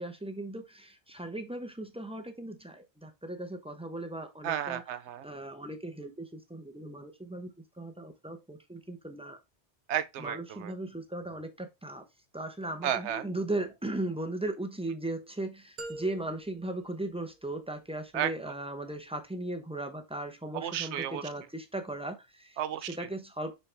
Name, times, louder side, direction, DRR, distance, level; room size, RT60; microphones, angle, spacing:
voice 1, 0.0-4.8 5.2-7.5 7.8-9.4 10.2-12.1 12.3-22.6 23.0-23.5, right 1 dB, 5° right, 0.8 m, -37 dB
voice 2, 4.4-5.3 9.9-10.7 12.8-13.3 18.1-18.5 20.5-21.3 22.6-23.1, right 10 dB, 80° right, 0.9 m, -33 dB
sound 1, 15.8-17.8, right 2 dB, 45° right, 0.9 m, -46 dB
6.8 x 4.3 x 3.3 m
omnidirectional pair, 1.2 m